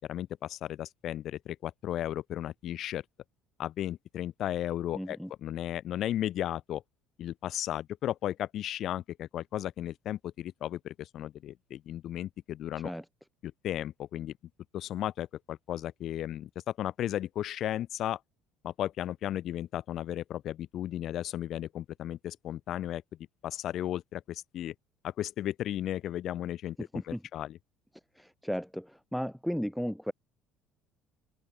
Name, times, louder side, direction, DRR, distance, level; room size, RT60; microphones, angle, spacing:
voice 1, 0.1-3.0 3.6-6.8 7.2-12.9 13.4-14.3 14.7-18.2 18.6-23.0 23.4-24.7 25.0-27.6, left 12 dB, 45° left, 1.5 m, -35 dB
voice 2, 4.9-5.3 12.8-13.0 26.9-27.2 28.2-30.1, equal, ahead, 3.1 m, -35 dB
open air
cardioid pair, 165°, 0 cm